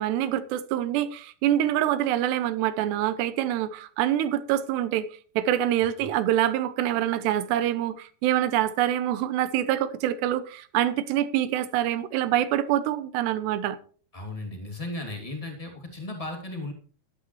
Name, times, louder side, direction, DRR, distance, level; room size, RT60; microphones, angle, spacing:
voice 1, 0.0-5.1 5.4-13.8, right 12 dB, 85° right, 3.0 m, -25 dB
voice 2, 14.1-16.7, left 2 dB, 15° left, 1.4 m, -35 dB
13.5 x 11.5 x 3.1 m
omnidirectional pair, 4.7 m